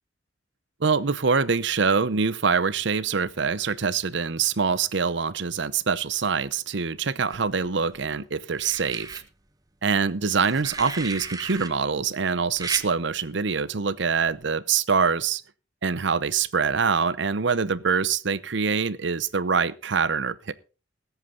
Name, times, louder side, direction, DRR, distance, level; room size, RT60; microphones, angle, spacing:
voice 1, 0.8-9.2 9.8-15.4 15.8-20.5, right 5 dB, 70° right, 0.8 m, -24 dB
sound 1, 7.3-8.0 8.5-9.2 10.4-11.7 12.6-12.9 14.2-14.5, right 4 dB, 20° right, 1.1 m, -35 dB
19.5 x 8.3 x 3.9 m
head